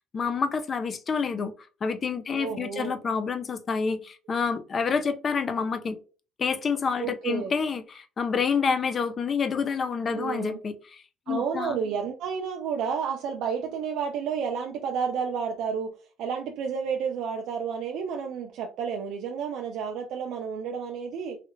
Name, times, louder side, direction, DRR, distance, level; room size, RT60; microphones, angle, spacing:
voice 1, 0.1-1.5 1.8-6.0 6.4-11.8, left 5 dB, 30° left, 0.4 m, -28 dB
voice 2, 2.3-2.9 7.0-7.5 10.1-10.6 11.3-15.9 16.2-21.4, right 6 dB, 65° right, 0.5 m, -31 dB
3.2 x 2.4 x 3.0 m
cardioid pair, 150°, 0 cm